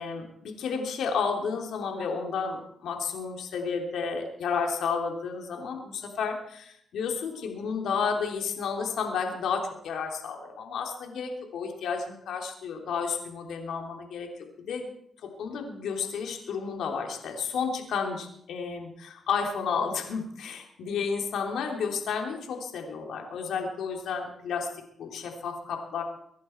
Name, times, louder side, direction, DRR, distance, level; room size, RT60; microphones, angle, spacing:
voice 1, 0.0-6.6 6.9-14.3 14.6-14.9 15.4-24.7 25.0-26.0, left 5 dB, 80° left, 2 dB, 3.3 m, -31 dB
24.5 x 11.0 x 4.6 m, 0.71 s
cardioid pair, 65°, 0 cm